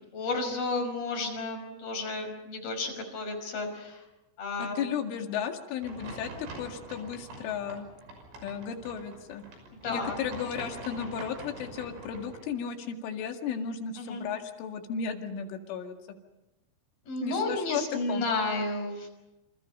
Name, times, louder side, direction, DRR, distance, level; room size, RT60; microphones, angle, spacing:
voice 1, 0.1-4.0 4.4-4.8 9.8-10.5 11.0-11.1 14.0-14.2 17.1-19.1, left 3 dB, 50° left, 2 dB, 7.3 m, -32 dB
voice 2, 4.6-7.9 8.4-9.4 9.9-16.0 17.2-17.8 18.1-18.3, left 7 dB, 85° left, 4 dB, 4.6 m, -34 dB
sound 1, 5.8-12.4, right 2 dB, 85° right, 8.4 m, -45 dB
29.0 x 28.0 x 5.6 m, 1.0 s
omnidirectional pair, 5.5 m